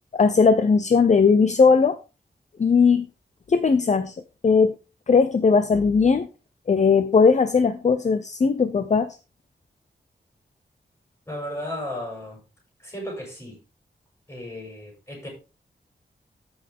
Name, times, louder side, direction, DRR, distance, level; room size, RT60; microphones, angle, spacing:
voice 1, 0.1-2.0 2.6-3.1 3.5-4.2 4.4-4.8 5.1-6.3 6.7-9.2, left 5 dB, 40° left, 11 dB, 0.6 m, -18 dB
voice 2, 11.3-12.4 12.8-13.6 14.3-15.3, left 1 dB, 15° left, -2 dB, 7.0 m, -34 dB
13.5 x 6.2 x 3.6 m, 0.30 s
wide cardioid pair, 150°, 18 cm